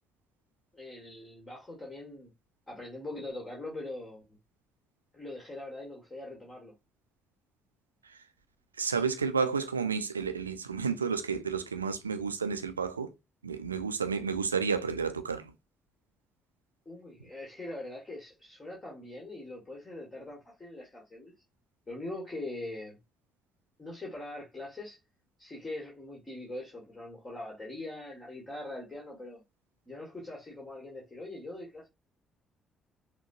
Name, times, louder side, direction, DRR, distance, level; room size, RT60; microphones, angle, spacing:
voice 1, 0.7-2.3 2.7-4.4 5.1-6.7 16.8-21.3 21.9-23.0 23.8-25.0 25.4-29.4 29.9-31.9, left 2 dB, 25° left, 1.7 m, -42 dB
voice 2, 8.8-13.1 13.4-15.4, right 5 dB, 85° right, 0.4 m, -31 dB
5.9 x 2.2 x 2.6 m
figure-of-eight pair, 45°, 0 cm